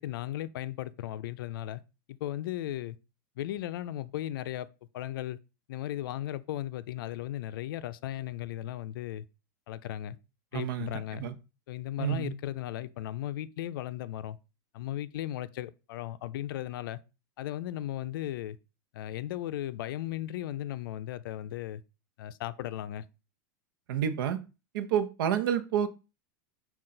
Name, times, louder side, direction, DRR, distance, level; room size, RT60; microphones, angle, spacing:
voice 1, 0.0-1.8 2.1-3.0 3.4-4.7 4.9-5.4 5.7-9.3 9.7-10.2 10.5-11.2 11.7-14.4 14.7-17.0 17.4-18.6 18.9-21.8 22.2-23.0, left 13 dB, 80° left, 0.4 m, -36 dB
voice 2, 10.5-11.3 12.0-12.3 23.9-24.4 24.7-25.9, right 9 dB, 75° right, 0.7 m, -29 dB
5.8 x 2.4 x 3.8 m
supercardioid pair, 155°, 11 cm